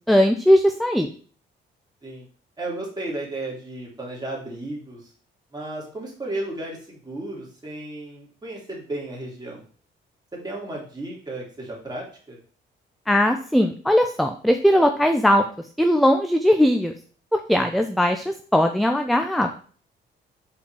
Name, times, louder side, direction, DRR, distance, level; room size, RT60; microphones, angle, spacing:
voice 1, 0.1-1.1 13.1-15.4 15.8-16.9 17.3-19.6, equal, ahead, 6 dB, 0.5 m, -19 dB
voice 2, 2.6-5.1 5.5-9.6 10.4-12.4, right 2 dB, 20° right, -3 dB, 2.9 m, -34 dB
5.5 x 4.2 x 4.7 m, 0.43 s
cardioid pair, 90°, 20 cm